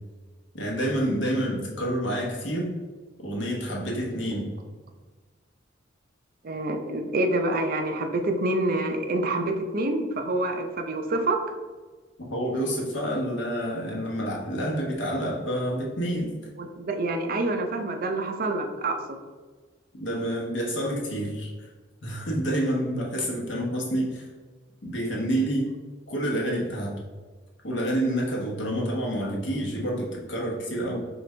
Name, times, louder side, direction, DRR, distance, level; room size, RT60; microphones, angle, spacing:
voice 1, 0.5-2.8 3.2-4.5 12.3-16.3 19.9-21.7 22.0-24.3 24.8-25.7 26.1-27.0 27.6-31.0, right 1 dB, 65° left, -2 dB, 1.0 m, -28 dB
voice 2, 6.4-11.4 16.6-19.2, right 2 dB, 50° right, 4 dB, 0.5 m, -27 dB
4.7 x 2.5 x 3.2 m, 1.4 s
head